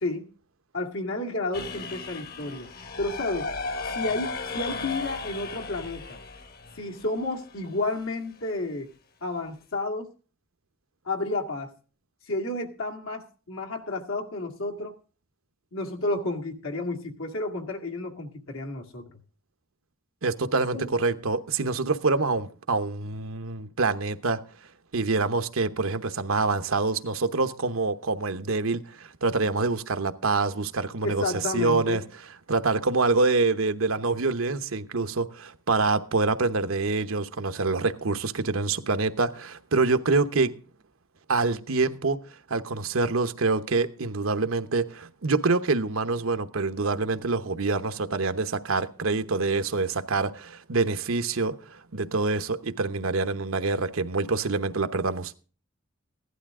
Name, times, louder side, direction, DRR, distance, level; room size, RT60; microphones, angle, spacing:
voice 1, 0.7-2.7 3.0-3.5 3.9-6.2 6.8-8.9 9.2-10.1 11.0-11.7 12.2-14.9 15.7-19.2 20.7-20.9 31.0-32.0, left 2 dB, 85° left, 2.1 m, -31 dB
sound 1, 1.5-7.5, left 3 dB, 50° left, 1.1 m, -35 dB
voice 2, 20.2-24.4 24.9-31.2 31.5-32.0 32.5-40.5 41.3-42.2 42.5-55.3, right 3 dB, 85° right, 1.0 m, -26 dB
16.0 x 11.5 x 3.7 m
head